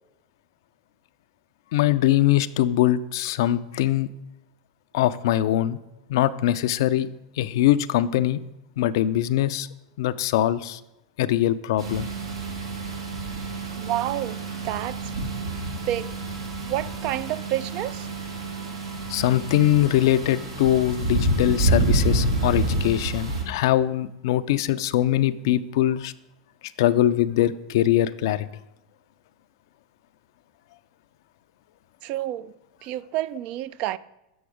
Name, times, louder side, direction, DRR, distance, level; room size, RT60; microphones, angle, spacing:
voice 1, 1.7-4.1 4.9-5.8 6.1-7.1 7.4-8.4 8.8-9.7 10.0-10.8 11.2-12.1 19.1-26.1 26.8-28.5, left 13 dB, 65° left, 0.4 m, -22 dB
sound 1, 11.8-23.4, right 2 dB, 85° right, 1.7 m, -28 dB
voice 2, 13.8-14.4 14.6-15.0 15.7-16.1 16.6-18.1 32.0-32.5 32.8-34.0, right 14 dB, 50° right, 0.3 m, -29 dB
7.1 x 6.1 x 5.0 m
hypercardioid pair, 100°, 2 cm